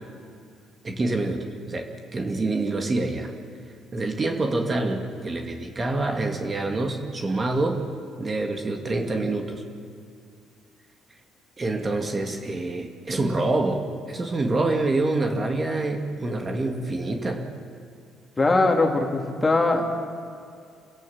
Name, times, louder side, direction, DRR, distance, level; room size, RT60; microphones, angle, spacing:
voice 1, 0.8-3.3 3.9-7.8 8.2-9.6 11.6-17.5, right 2 dB, 30° right, 3 dB, 2.3 m, -26 dB
voice 2, 18.4-19.9, left 2 dB, 20° left, 3 dB, 2.7 m, -21 dB
28.0 x 17.0 x 7.2 m, 2.3 s
cardioid pair, 95°, 0 cm